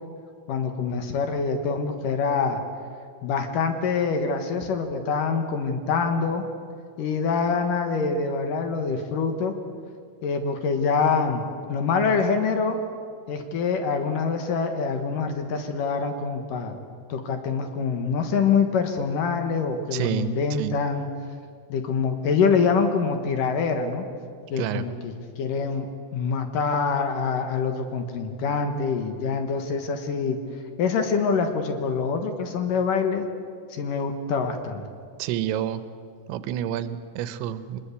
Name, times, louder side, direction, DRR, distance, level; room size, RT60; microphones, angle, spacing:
voice 1, 0.5-2.6 3.2-6.4 7.0-9.6 10.2-12.8 13.3-16.8 17.1-21.1 21.7-24.0 24.5-30.4 30.8-33.3 33.7-34.8, left 5 dB, 65° left, 6 dB, 2.4 m, -25 dB
voice 2, 19.9-20.3 20.6-20.7 24.6-24.9 35.2-35.8 36.3-37.8, right 11 dB, 85° right, 12 dB, 3.2 m, -28 dB
23.5 x 20.5 x 8.3 m, 2.2 s
omnidirectional pair, 5.2 m